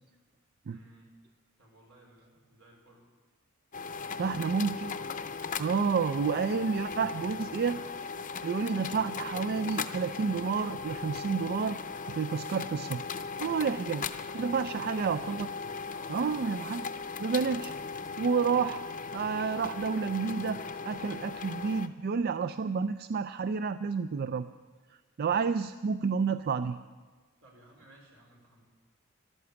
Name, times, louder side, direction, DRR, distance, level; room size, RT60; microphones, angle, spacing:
voice 1, 0.7-1.1 1.6-3.1 4.0-4.6 14.3-15.1 15.9-16.4 27.4-28.6, right 1 dB, 75° right, 0 dB, 4.3 m, -57 dB
sound 1, 3.7-21.9, left 5 dB, 40° left, 0.6 m, -38 dB
voice 2, 4.2-5.0 5.6-7.8 8.4-11.8 12.1-13.0 13.4-14.1 14.3-15.5 16.1-16.9 17.2-17.7 18.2-18.8 19.1-24.5 25.2-26.8, right 5 dB, 50° right, 12 dB, 0.3 m, -30 dB
13.5 x 12.5 x 7.0 m, 1.4 s
head